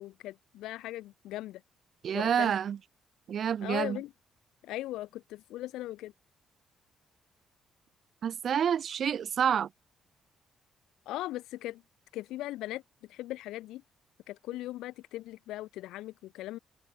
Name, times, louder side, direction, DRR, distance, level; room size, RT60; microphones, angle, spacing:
voice 1, 0.0-1.6 2.1-2.5 3.6-4.1 4.6-6.1 11.0-11.8 12.1-13.8 14.3-16.6, left 15 dB, 65° left, 1.5 m, -39 dB
voice 2, 2.0-2.8 3.3-4.0 8.2-9.7, right 8 dB, 50° right, 1.4 m, -28 dB
open air
figure-of-eight pair, 40°, 0 cm